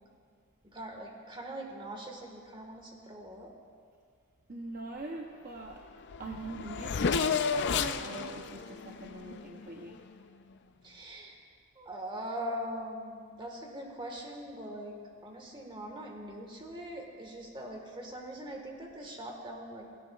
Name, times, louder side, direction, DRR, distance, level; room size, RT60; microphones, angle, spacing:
voice 1, 0.7-3.5 10.8-11.3 11.8-15.0 15.2-19.9, equal, 20° right, 1 dB, 1.5 m, -41 dB
voice 2, 4.5-5.8 6.2-10.0, right 2 dB, 40° right, 0 dB, 0.7 m, -43 dB
Race car auto racing / Accelerating revving vroom, 5.7-5.8 6.0-10.0, left 5 dB, 50° left, 0.4 m, -32 dB
17.0 x 16.5 x 2.4 m, 2.1 s
head